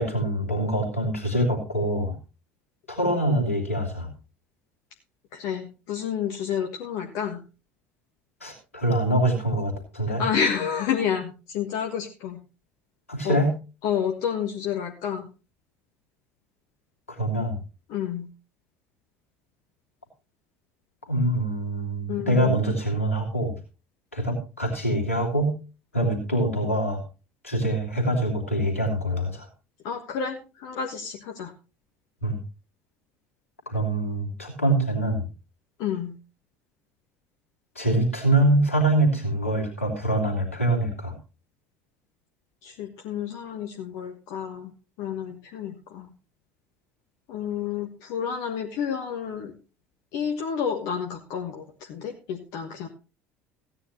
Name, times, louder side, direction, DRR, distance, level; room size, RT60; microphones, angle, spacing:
voice 1, 0.0-2.2 2.9-4.1 8.4-10.2 13.1-13.5 17.1-17.6 21.1-23.5 24.1-25.5 25.9-27.0 27.4-29.5 32.2-32.4 33.7-35.3 37.7-41.2, right 1 dB, 90° left, 0 dB, 2.9 m, -24 dB
voice 2, 5.3-7.4 10.2-12.4 13.2-13.4 13.8-15.3 17.9-18.3 22.1-22.5 29.8-31.5 35.8-36.1 42.6-44.7 45.0-46.1 47.3-49.5 50.1-52.9, left 8 dB, 60° left, 3 dB, 1.5 m, -30 dB
16.0 x 9.7 x 3.0 m, 0.32 s
figure-of-eight pair, 65°, 7 cm